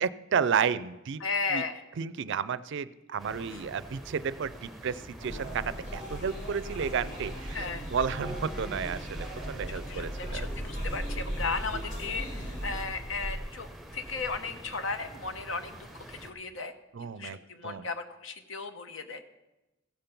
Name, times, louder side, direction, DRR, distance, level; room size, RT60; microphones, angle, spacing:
voice 1, 0.0-1.2 1.5-1.6 2.0-10.5 16.9-17.9, right 7 dB, 65° right, 15 dB, 0.4 m, -32 dB
voice 2, 1.2-1.8 3.4-3.6 7.5-7.9 9.7-16.7 17.0-19.3, left 4 dB, 70° left, 8 dB, 0.9 m, -35 dB
sound 1, 3.2-16.3, right 1 dB, ahead, 0.8 m, -44 dB
sound 2, 5.2-12.8, equal, 35° left, 2.6 m, -38 dB
15.5 x 5.2 x 5.8 m, 1.0 s
head